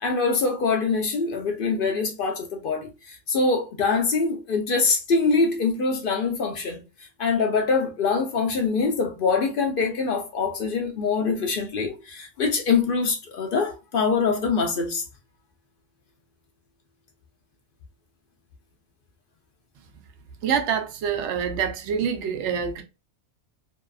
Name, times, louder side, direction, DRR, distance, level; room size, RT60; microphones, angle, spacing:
voice 1, 0.0-6.8 7.2-15.0, left 4 dB, 60° left, 0.6 m, -24 dB
voice 2, 20.4-22.8, right 7 dB, 80° right, 0.9 m, -26 dB
2.7 x 2.4 x 2.2 m
omnidirectional pair, 1.2 m